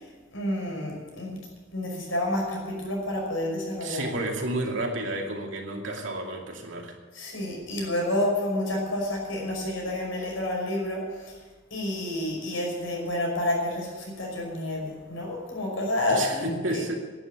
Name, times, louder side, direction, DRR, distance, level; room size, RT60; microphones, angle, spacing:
voice 1, 0.3-1.4 1.7-4.0 7.2-11.3 11.7-16.5, left 1 dB, 75° left, -1 dB, 5.7 m, -29 dB
voice 2, 3.8-7.0 16.1-16.9, right 1 dB, 65° right, 1 dB, 2.5 m, -31 dB
11.0 x 10.5 x 9.5 m, 1.3 s
head